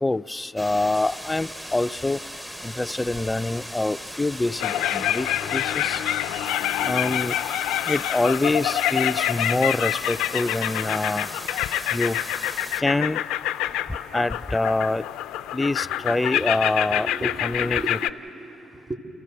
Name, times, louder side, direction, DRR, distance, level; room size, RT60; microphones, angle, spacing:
voice 1, 0.0-2.2 2.6-6.0 6.8-7.4 7.9-11.3 11.9-12.2 12.8-13.2 14.1-15.0 15.5-18.0, left 2 dB, 15° left, 15 dB, 0.4 m, -25 dB
sound 1, 0.6-12.8, equal, 5° right, 0.8 m, -38 dB
sound 2, 4.6-18.1, left 12 dB, 85° left, 0.4 m, -27 dB
voice 2, 16.0-16.5 16.9-19.0, right 2 dB, 35° right, 2 dB, 3.4 m, -37 dB
28.5 x 15.5 x 6.7 m, 2.9 s
supercardioid pair, 70°, 0 cm